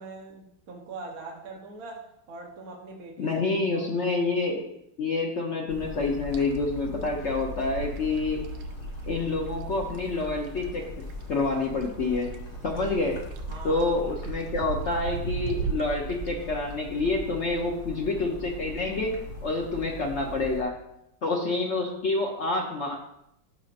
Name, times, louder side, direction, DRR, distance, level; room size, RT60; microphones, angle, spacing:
voice 1, 0.0-4.1 13.5-13.8, right 3 dB, 55° right, 0 dB, 1.2 m, -42 dB
voice 2, 3.2-4.7 5.0-8.4 9.1-10.8 11.3-12.3 12.6-13.2 13.6-19.1 19.4-20.7 21.2-23.0, left 3 dB, 75° left, 0 dB, 0.6 m, -28 dB
sound 1, 5.7-20.6, equal, 55° left, 1.6 m, -40 dB
sound 2, 6.0-10.9 11.1-16.3, right 5 dB, 80° right, 1.5 m, -37 dB
13.0 x 5.3 x 2.5 m, 0.81 s
omnidirectional pair, 2.3 m